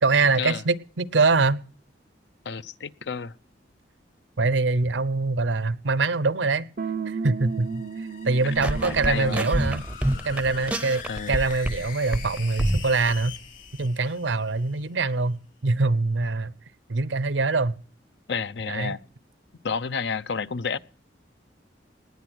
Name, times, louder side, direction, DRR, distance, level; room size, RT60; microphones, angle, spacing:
voice 1, 0.0-1.6 4.4-6.7 7.1-7.8 8.2-9.8 10.2-13.3 13.8-16.5 16.9-17.8 18.7-19.0, right 3 dB, 85° right, 0.7 m, -24 dB
voice 2, 2.4-3.3 9.0-9.5 11.1-11.4 18.3-19.0 19.6-20.8, left 5 dB, 70° left, 0.6 m, -30 dB
sound 1, 6.8-9.9, right 5 dB, 50° right, 0.6 m, -33 dB
sound 2, 7.4-14.9, left 7 dB, 50° left, 2.6 m, -42 dB
sound 3, 8.6-11.8 12.1-13.1, right 1 dB, 5° right, 0.6 m, -27 dB
19.0 x 9.3 x 6.3 m
head